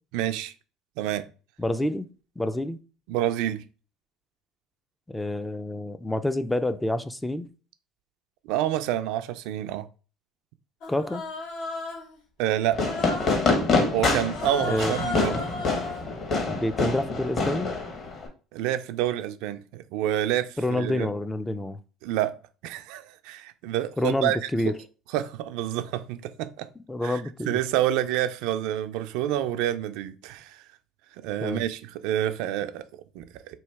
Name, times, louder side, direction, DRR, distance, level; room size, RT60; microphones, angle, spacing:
voice 1, 0.1-0.5 1.0-1.3 3.1-3.6 8.4-9.8 12.4-13.0 13.9-15.3 18.5-21.1 22.0-22.4 22.6-24.5 25.1-26.7 27.0-30.6 31.2-33.6, right 12 dB, 80° right, 0.4 m, -28 dB
voice 2, 1.6-2.1 2.4-2.8 5.1-7.5 10.9-11.2 14.6-15.0 16.5-17.7 20.6-21.8 24.0-24.7 26.9-27.6 31.4-31.6, left 1 dB, 10° left, 0.3 m, -28 dB
Human voice, 10.8-12.1 12.8-13.5 14.3-16.0, left 3 dB, 80° left, 1.3 m, -34 dB
Fireworks, 12.7-18.3, left 3 dB, 40° left, 1.2 m, -26 dB
3.1 x 2.8 x 4.5 m
cardioid pair, 115°, 0 cm